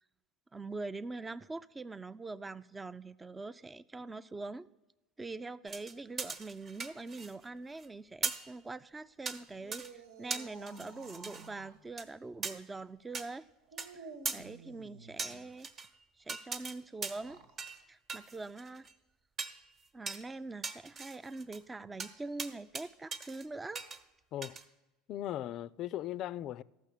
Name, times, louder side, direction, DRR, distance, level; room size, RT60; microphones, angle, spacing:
voice 1, 0.5-4.7 5.2-13.5 13.9-15.7 16.2-17.4 17.9-18.9 19.9-23.8, right 3 dB, 15° right, 0.4 m, -43 dB
sound 1, 5.7-7.4 7.7-7.9 8.2-8.5 9.3-9.4 9.7-9.9 10.3-11.5 12.0-12.1 12.4-12.5 13.1-13.3 13.8-13.9 14.2-14.4 15.2-15.9 16.3-16.8 17.0-17.3 17.6-17.8 18.1-18.9 19.4-19.6 20.1-20.2 20.6-21.6 22.0-22.1 22.4-22.8 23.1-23.4 23.7-24.0 24.4-24.6, right 4 dB, 35° right, 1.1 m, -39 dB
sound 2, 9.5-11.8 13.7-15.5 17.1-17.6, right 4 dB, 75° right, 1.4 m, -52 dB
voice 2, 25.1-26.6, left 12 dB, 50° left, 0.4 m, -38 dB
13.5 x 6.2 x 8.3 m
supercardioid pair, 125°, 0 cm